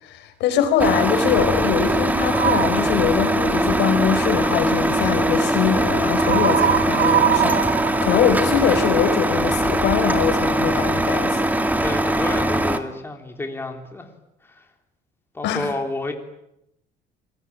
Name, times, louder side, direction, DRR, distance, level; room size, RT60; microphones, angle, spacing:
voice 1, 0.0-7.6 8.0-11.4 15.4-15.7, left 8 dB, 85° left, 8 dB, 5.2 m, -22 dB
Truck, 0.8-12.8, right 1 dB, 10° right, 2.2 m, -21 dB
sound 1, 2.3-2.9 6.2-8.9, right 10 dB, 60° right, 1.6 m, -22 dB
voice 2, 11.8-14.1 14.4-14.7 15.3-16.1, left 2 dB, 10° left, 3 dB, 3.6 m, -30 dB
27.5 x 21.5 x 8.9 m, 0.82 s
cardioid pair, 135°, 18 cm